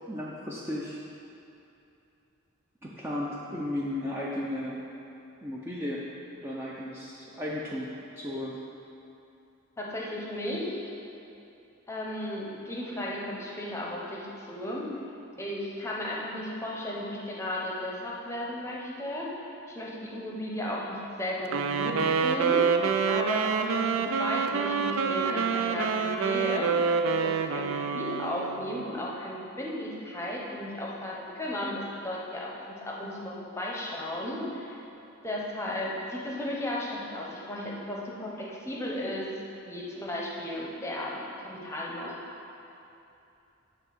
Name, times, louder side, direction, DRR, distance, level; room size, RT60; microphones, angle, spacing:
voice 1, 0.1-1.0 2.8-4.8 5.4-6.1 6.3-8.6, left 1 dB, 10° right, -6 dB, 0.5 m, -34 dB
voice 2, 9.8-10.8 11.9-14.9 15.4-19.5 19.7-22.0 22.2-22.6 23.1-34.8 35.2-39.3 39.6-42.2, left 1 dB, 15° left, -4 dB, 0.8 m, -35 dB
Wind instrument woodwind instrument, 21.4-28.7, right 5 dB, 70° right, 0.4 m, -27 dB
8.2 x 3.3 x 5.9 m, 2.8 s
head